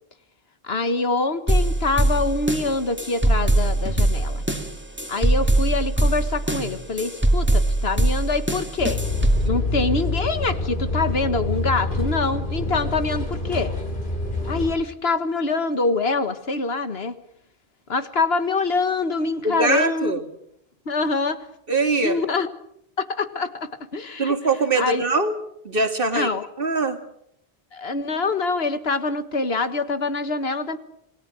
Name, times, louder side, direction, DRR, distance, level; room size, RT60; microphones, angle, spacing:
voice 1, 0.6-4.4 5.1-9.0 9.5-13.7 14.5-17.2 17.9-20.2 20.9-21.5 22.0-22.5 23.0-24.3 24.8-25.0 26.1-26.5 27.7-30.8, left 3 dB, 75° left, 11 dB, 1.8 m, -25 dB
sound 1, 1.5-9.5, right 1 dB, 10° right, 2.3 m, -21 dB
sound 2, 8.8-14.7, left 2 dB, 55° left, 3.9 m, -26 dB
voice 2, 19.4-20.2 21.7-22.2 24.2-25.3 25.6-26.3 26.6-27.0, right 3 dB, 60° right, 7 dB, 2.5 m, -22 dB
27.0 x 20.0 x 6.4 m, 0.73 s
omnidirectional pair, 1.0 m